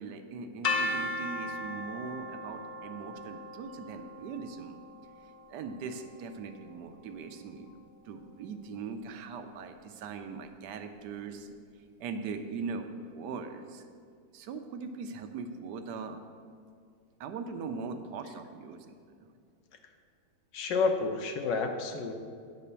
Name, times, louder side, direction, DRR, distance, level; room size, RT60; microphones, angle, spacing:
voice 1, 0.0-4.8 5.5-7.8 8.0-11.5 12.0-13.9 14.3-16.2 17.2-19.3, right 5 dB, 75° right, 8 dB, 1.2 m, -40 dB
sound 1, 0.6-6.6, left 2 dB, 75° left, 0.4 m, -37 dB
voice 2, 20.5-22.1, left 4 dB, 90° left, 5 dB, 1.4 m, -29 dB
9.8 x 4.2 x 6.8 m, 2.2 s
omnidirectional pair, 1.9 m